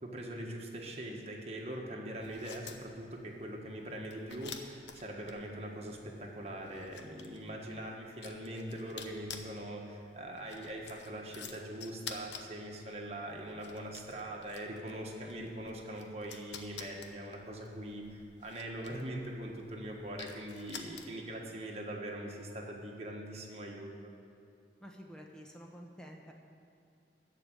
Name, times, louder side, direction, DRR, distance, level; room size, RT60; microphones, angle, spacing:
voice 1, 0.0-24.1, right 1 dB, 35° right, -1 dB, 1.4 m, -42 dB
sound 1, 2.2-21.4, left 6 dB, 80° left, 0.9 m, -51 dB
voice 2, 24.8-26.3, equal, 5° left, 0 dB, 1.0 m, -50 dB
13.5 x 5.0 x 9.2 m, 2.6 s
head